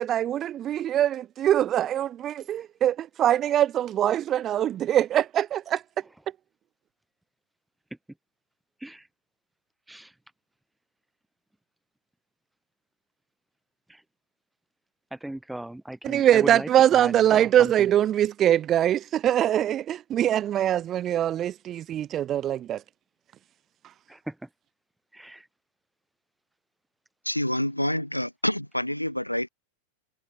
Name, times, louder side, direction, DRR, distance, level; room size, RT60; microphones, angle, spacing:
voice 1, 0.0-5.8 16.0-22.8, right 11 dB, 30° right, 1.4 m, -23 dB
voice 2, 15.1-17.9 24.1-24.5 25.1-25.5, right 1 dB, 5° right, 6.6 m, -37 dB
voice 3, 27.2-29.5, left 1 dB, 90° left, 2.1 m, -27 dB
figure-of-eight pair, 90°, 0 cm